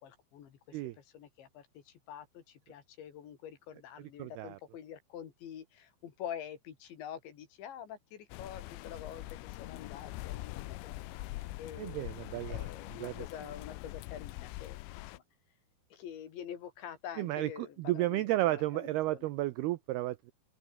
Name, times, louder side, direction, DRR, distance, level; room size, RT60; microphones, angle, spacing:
voice 1, 0.0-14.8 15.1-15.2 15.9-19.3, left 9 dB, 70° left, 5.0 m, -47 dB
voice 2, 4.2-4.6 11.8-12.7 13.0-13.1 17.2-20.3, right 16 dB, 85° right, 2.3 m, -33 dB
sound 1, 8.3-15.2, left 19 dB, 90° left, 3.4 m, -43 dB
open air
omnidirectional pair, 5.5 m